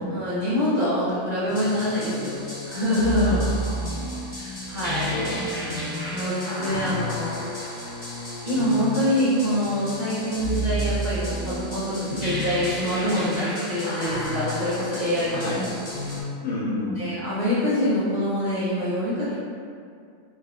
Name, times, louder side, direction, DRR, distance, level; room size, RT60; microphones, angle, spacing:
voice 1, 0.1-2.3 2.6-3.4 4.4-5.1 6.1-7.4 8.4-15.4 17.0-19.3, left 1 dB, 40° right, -12 dB, 0.7 m, -25 dB
sound 1, 1.5-16.2, equal, 25° left, 1.3 m, -31 dB
voice 2, 3.2-4.3 5.0-6.1 6.6-7.2 12.1-12.4 15.3-15.7 16.4-17.2, left 1 dB, 90° left, -5 dB, 1.1 m, -32 dB
3.5 x 2.4 x 2.3 m, 2.3 s
omnidirectional pair, 1.5 m